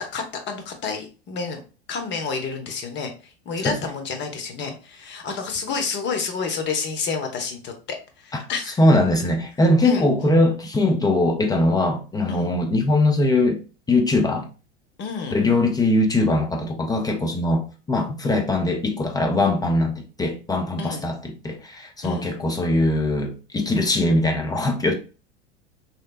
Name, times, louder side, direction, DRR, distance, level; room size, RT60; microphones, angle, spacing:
voice 1, 0.0-1.6 1.9-3.1 3.5-7.7 8.2-8.8 9.8-10.1 12.3-12.5 15.0-15.4 20.8-21.0 22.0-22.3, left 5 dB, 35° left, 0.9 m, -29 dB
voice 2, 8.8-13.6 13.9-14.5 15.3-24.9, left 2 dB, 10° left, 0.4 m, -21 dB
3.1 x 2.8 x 2.4 m
hypercardioid pair, 90°, 32 cm